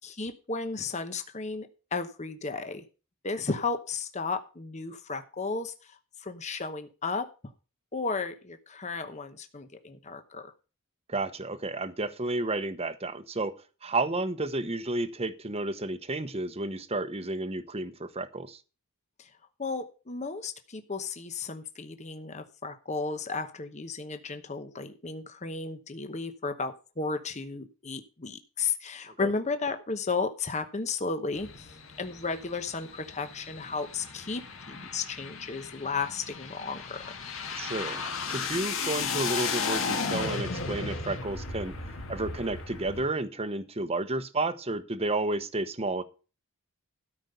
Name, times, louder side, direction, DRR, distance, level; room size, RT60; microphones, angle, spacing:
voice 1, 0.0-2.8 3.2-6.0 6.2-7.3 7.9-10.5 19.2-19.3 19.6-31.7 32.0-37.0, left 4 dB, 30° left, 7 dB, 1.0 m, -34 dB
voice 2, 11.1-13.5 13.8-18.6 29.2-29.3 37.5-41.8 42.1-46.0, right 2 dB, 25° right, 11 dB, 1.0 m, -31 dB
sound 1, 31.3-43.0, left 5 dB, 60° left, 2.1 m, -35 dB
13.0 x 5.3 x 6.7 m, 0.34 s
head